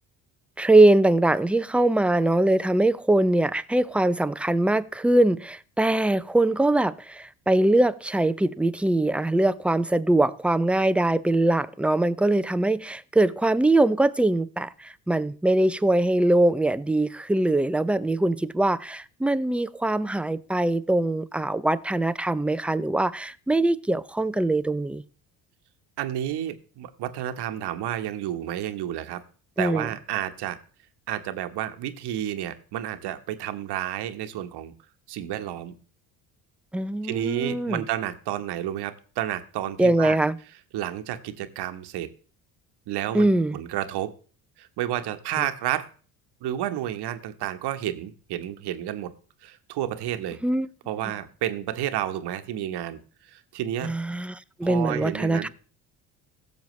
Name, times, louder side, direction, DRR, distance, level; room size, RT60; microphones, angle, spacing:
voice 1, 0.6-25.0 29.6-29.9 36.7-37.8 39.8-40.4 43.1-43.6 50.4-50.7 53.8-55.5, right 2 dB, 5° right, 0.4 m, -22 dB
voice 2, 26.0-29.2 29.6-30.6 31.1-34.7 35.1-35.7 37.0-40.2 40.7-42.1 42.9-44.1 44.6-45.9 46.4-49.1 49.4-50.4 50.9-53.0 53.3-53.9 54.6-55.5, right 12 dB, 60° right, 1.2 m, -31 dB
16.0 x 6.9 x 3.2 m
hypercardioid pair, 65°, 44 cm